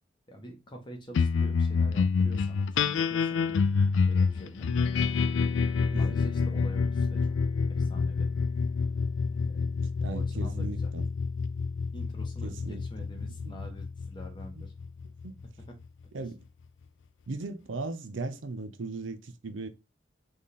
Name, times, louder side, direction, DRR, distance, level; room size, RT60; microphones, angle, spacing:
voice 1, 0.3-3.6 4.1-4.7 6.0-7.2 7.7-8.3 9.3-9.6 10.0-10.9 11.9-14.7 15.7-15.8, equal, 25° left, 1.2 m, -45 dB
sound 1, 1.1-15.8, left 5 dB, 80° left, 0.4 m, -28 dB
voice 2, 10.0-11.1 12.4-12.8 13.4-13.6 14.5-14.6 15.2-15.3 16.1-16.4 17.3-19.7, right 3 dB, 90° right, 0.6 m, -37 dB
3.6 x 3.4 x 4.1 m
head